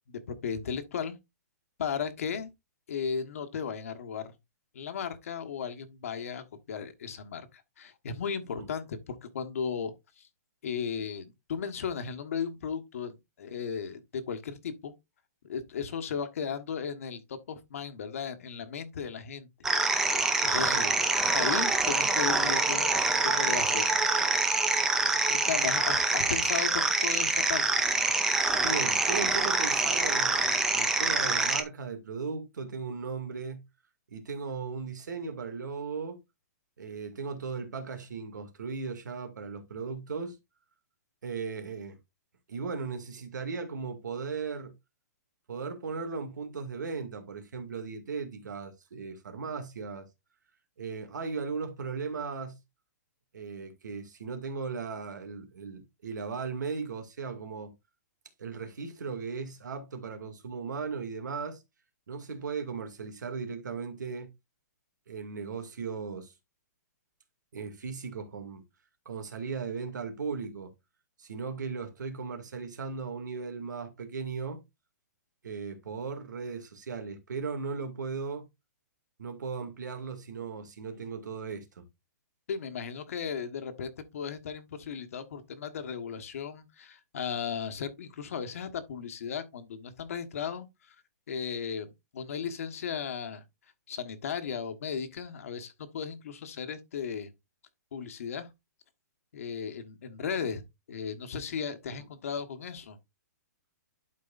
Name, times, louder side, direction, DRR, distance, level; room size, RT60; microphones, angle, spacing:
voice 1, 0.1-1.2 1.8-2.5 2.9-4.3 4.7-7.5 7.8-10.3 10.6-14.9 15.4-19.5 20.1-20.8 21.3-22.9 23.2-24.0 25.3-27.8 82.5-90.9 91.3-93.4 93.9-97.3 97.9-98.5 99.3-100.6 100.9-103.0, left 6 dB, 50° left, 1.3 m, -36 dB
sound 1, 19.6-31.6, right 3 dB, 5° right, 0.5 m, -26 dB
voice 2, 28.6-33.6 34.1-36.2 36.8-40.4 41.2-42.0 42.5-44.7 45.5-50.1 50.8-52.6 53.3-57.7 58.4-61.6 62.1-64.3 65.1-66.3 67.5-68.6 69.1-70.7 71.2-74.6 75.4-78.5 79.2-81.8, right 5 dB, 90° right, 2.3 m, -37 dB
12.0 x 4.7 x 2.5 m
hypercardioid pair, 175°, 9 cm